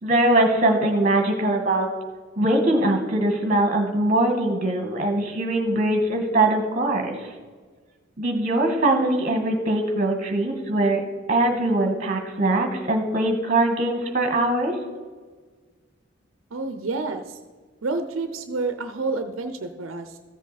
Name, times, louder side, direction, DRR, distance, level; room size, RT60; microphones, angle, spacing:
voice 1, 0.0-1.9 2.4-7.3 8.2-11.0 11.3-14.8, right 1 dB, 35° right, 4 dB, 1.6 m, -22 dB
voice 2, 16.5-17.4 17.8-20.2, right 3 dB, 85° right, 8 dB, 0.7 m, -29 dB
14.5 x 7.5 x 4.2 m, 1.4 s
head